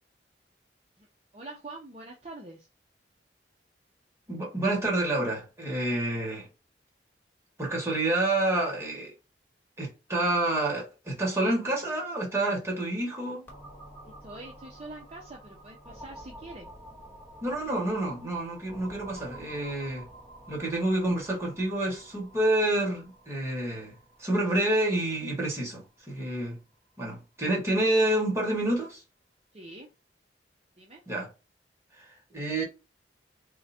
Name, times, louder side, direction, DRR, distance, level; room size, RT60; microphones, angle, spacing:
voice 1, 1.3-2.7 14.2-16.7 29.5-29.9 30.8-31.0, right 2 dB, 35° right, 0.6 m, -44 dB
voice 2, 4.3-6.5 7.6-9.1 9.8-13.5 17.4-20.1 20.5-23.9 24.2-26.6 27.0-29.0 31.1-31.3 31.9-32.6, right 1 dB, 15° right, 1.5 m, -28 dB
sound 1, 13.5-27.0, right 1 dB, 10° left, 1.2 m, -50 dB
3.8 x 2.2 x 4.2 m
head